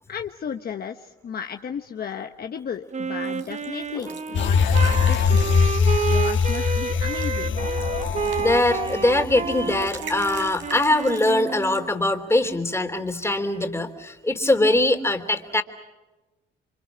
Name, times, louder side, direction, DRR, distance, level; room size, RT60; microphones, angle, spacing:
voice 1, 0.1-5.5 6.1-7.7, left 7 dB, 50° left, 5 dB, 1.2 m, -34 dB
Wind instrument woodwind instrument, 2.9-11.9, right 6 dB, 35° right, 0.9 m, -30 dB
sound 1, 3.2-11.9, right 6 dB, 70° right, 4.3 m, -44 dB
sound 2, 4.3-10.0 10.3-10.4, left 6 dB, 70° left, 2.2 m, -22 dB
voice 2, 8.2-15.6, left 2 dB, 15° left, 6 dB, 3.2 m, -22 dB
29.0 x 25.0 x 6.1 m, 1.1 s
cardioid pair, 90°, 20 cm